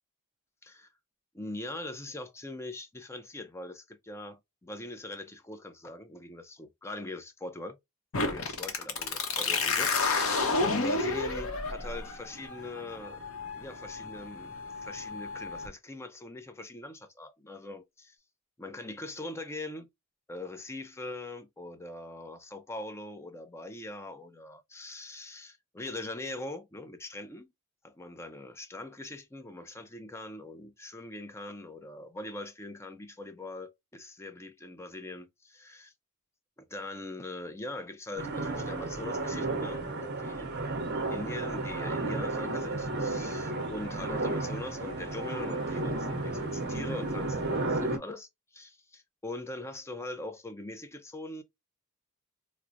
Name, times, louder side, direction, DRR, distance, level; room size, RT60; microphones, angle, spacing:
voice 1, 1.3-7.8 8.1-13.2 13.6-18.2 18.6-19.9 20.3-27.5 27.8-35.9 36.6-40.5 41.1-51.4, left 2 dB, 10° left, 0.4 m, -42 dB
sound 1, 8.1-15.7, left 3 dB, 70° left, 0.8 m, -31 dB
sound 2, 38.2-48.0, right 2 dB, 50° right, 0.7 m, -33 dB
4.5 x 2.0 x 2.4 m
head